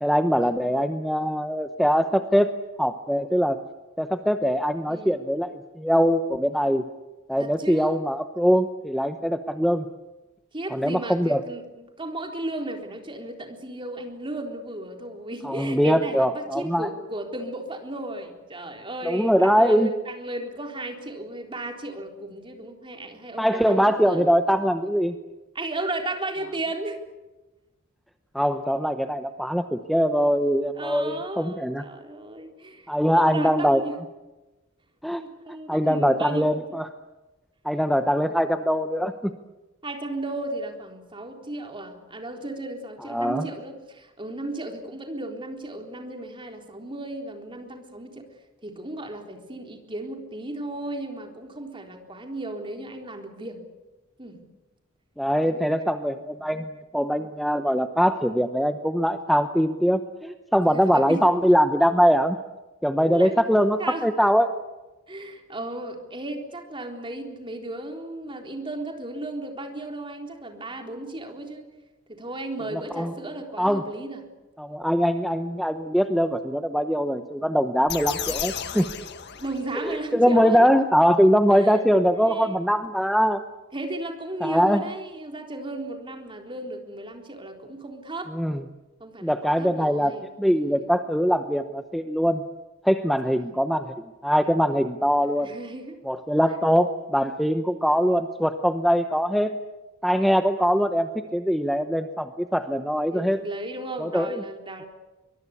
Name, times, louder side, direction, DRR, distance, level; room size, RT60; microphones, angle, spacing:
voice 1, 0.0-2.5 2.8-3.6 4.0-6.9 7.3-9.9 10.7-11.4 15.4-16.9 19.0-19.9 23.4-25.2 28.3-31.8 32.9-33.8 35.0-35.2 35.7-36.9 37.6-39.3 43.1-43.5 55.2-62.4 62.8-64.5 72.7-73.1 73.6-73.8 74.6-78.9 79.8-83.4 84.4-84.9 88.3-88.6 89.2-90.1 90.4-92.4 92.8-93.9 94.2-95.5 96.0-99.5 100.0-103.4 104.0-104.4, equal, ahead, 7 dB, 0.8 m, -22 dB
voice 2, 4.9-5.2 7.4-8.0 10.5-24.3 25.5-27.0 30.8-34.0 35.2-36.7 39.8-48.2 48.6-53.6 54.2-54.4 55.4-55.8 60.7-61.3 63.0-63.4 63.8-64.1 65.1-71.7 72.1-74.2 79.4-80.7 81.5-81.8 82.2-82.6 83.7-88.3 89.0-90.9 93.3-93.5 95.4-96.0 103.1-104.9, right 2 dB, 25° right, 3 dB, 3.8 m, -35 dB
sound 1, 77.9-80.0, left 9 dB, 55° left, 1.7 m, -33 dB
23.5 x 22.5 x 8.4 m, 1.1 s
head